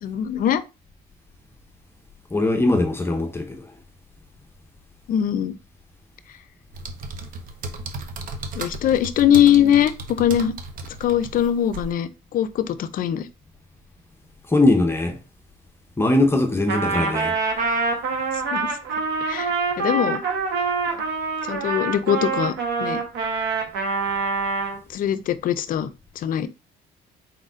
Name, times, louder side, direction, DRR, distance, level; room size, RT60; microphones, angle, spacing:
voice 1, 0.0-0.6 5.1-5.5 8.6-10.5 11.0-13.3 18.5-18.7 19.3-20.2 21.5-22.5 22.8-23.0 24.9-25.9 26.2-26.5, left 10 dB, 55° left, 0.5 m, -21 dB
voice 2, 2.3-3.7 14.5-15.2 16.0-17.4, left 2 dB, 15° left, 0.7 m, -20 dB
sound 1, 6.7-11.9, right 3 dB, 55° right, 0.8 m, -35 dB
Trumpet, 16.7-24.8, right 4 dB, 85° right, 1.2 m, -25 dB
4.3 x 4.0 x 2.4 m
cardioid pair, 110°, 17 cm